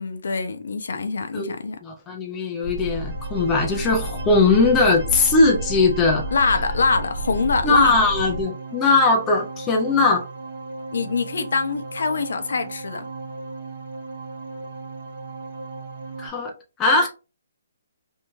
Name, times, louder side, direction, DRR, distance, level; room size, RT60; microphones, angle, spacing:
voice 1, 0.0-1.8 6.3-8.0 10.9-13.1, left 4 dB, 65° left, 0.5 m, -24 dB
voice 2, 1.8-6.2 6.5-6.6 7.6-10.2 16.2-16.5 16.8-17.1, left 3 dB, 10° left, 0.4 m, -19 dB
sound 1, 2.6-8.4, right 1 dB, 35° left, 1.1 m, -31 dB
sound 2, 2.7-16.3, right 3 dB, 50° right, 0.8 m, -36 dB
2.6 x 2.2 x 2.9 m
hypercardioid pair, 175°, 0 cm